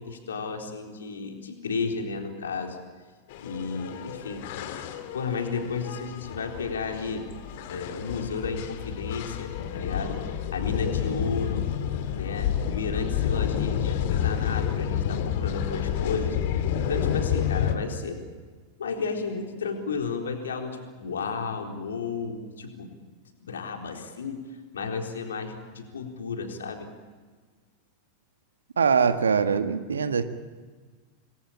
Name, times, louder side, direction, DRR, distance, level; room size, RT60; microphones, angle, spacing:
voice 1, 0.0-2.8 3.4-4.5 5.1-7.2 7.7-11.7 12.1-18.2 18.8-22.9 23.4-24.4 24.7-26.9, left 4 dB, 65° left, 2 dB, 4.1 m, -33 dB
sound 1, 3.3-17.8, left 9 dB, 50° left, 2.2 m, -29 dB
voice 2, 28.8-30.2, right 6 dB, 70° right, 9 dB, 1.6 m, -22 dB
28.0 x 21.5 x 8.7 m, 1.5 s
figure-of-eight pair, 90°, 0 cm